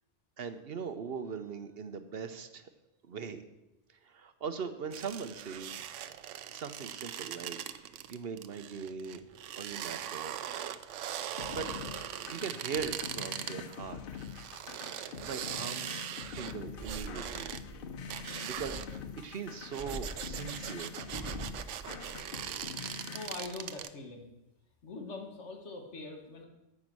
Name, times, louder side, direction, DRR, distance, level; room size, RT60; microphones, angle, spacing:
voice 1, 0.4-2.7 3.1-3.4 3.9-5.8 6.5-9.2 9.5-10.4 10.8-11.0 11.5-11.7 12.3-14.2 14.9-16.0 16.3-17.5 18.4-18.8 19.1-20.9, right 6 dB, 60° right, 9 dB, 1.0 m, -40 dB
sound 1, 4.9-13.7 14.2-17.6 18.1-19.0 19.6-23.9, right 10 dB, 90° right, 0.9 m, -41 dB
sound 2, 11.4-23.4, left 6 dB, 55° left, 0.8 m, -45 dB
sound 3, 16.7-19.1 19.7-22.8 23.2-23.8, right 2 dB, 20° right, 1.0 m, -45 dB
voice 2, 23.1-24.3 24.8-26.4, left 3 dB, 75° left, 3 dB, 1.9 m, -43 dB
9.4 x 8.7 x 6.1 m, 0.93 s
omnidirectional pair, 1.2 m